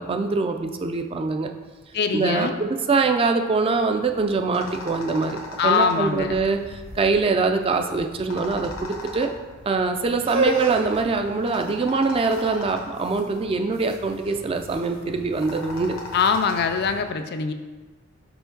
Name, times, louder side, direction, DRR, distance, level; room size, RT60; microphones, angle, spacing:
voice 1, 0.0-1.5 2.1-5.4 5.6-9.3 9.7-16.0, right 4 dB, 25° right, 5 dB, 0.3 m, -23 dB
voice 2, 1.9-2.6 5.6-6.4 16.1-17.5, left 5 dB, 50° left, 7 dB, 0.4 m, -23 dB
sound 1, 3.8-17.0, left 2 dB, 75° left, 0.9 m, -40 dB
sound 2, 10.1-16.1, right 2 dB, 75° right, 1.2 m, -31 dB
5.1 x 4.9 x 3.8 m, 1.3 s
head